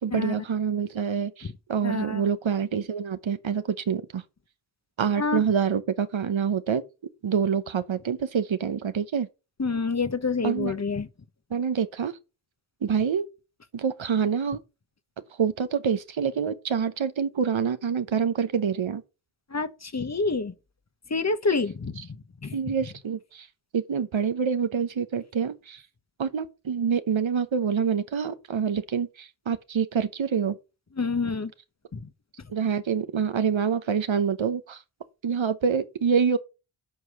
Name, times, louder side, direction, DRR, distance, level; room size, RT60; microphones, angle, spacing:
voice 1, 0.0-4.2 5.0-6.8 7.2-9.3 10.4-10.7 11.5-12.2 12.8-13.2 13.7-14.6 15.4-19.0 22.5-23.5 23.7-25.8 26.2-30.6 32.5-34.8 35.2-36.4, right 7 dB, 70° right, 0.9 m, -26 dB
voice 2, 1.8-2.2 5.2-5.4 9.6-11.1 19.5-20.5 21.1-22.0 22.4-22.6 31.0-31.5 31.9-32.0, left 4 dB, 35° left, 0.9 m, -27 dB
8.2 x 4.8 x 6.2 m
cardioid pair, 55°, 48 cm